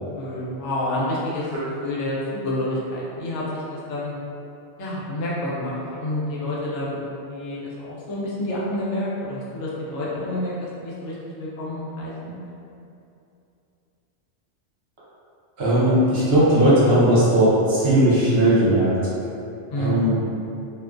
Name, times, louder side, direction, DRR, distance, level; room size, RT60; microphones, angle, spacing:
voice 1, 0.2-1.5 1.8-4.1 4.8-10.5 10.8-12.4 19.7-20.0, left 1 dB, 85° left, -6 dB, 0.9 m, -29 dB
voice 2, 15.6-18.9 19.8-20.2, right 1 dB, 65° right, -9 dB, 1.0 m, -17 dB
2.4 x 2.2 x 2.4 m, 2.7 s
omnidirectional pair, 1.2 m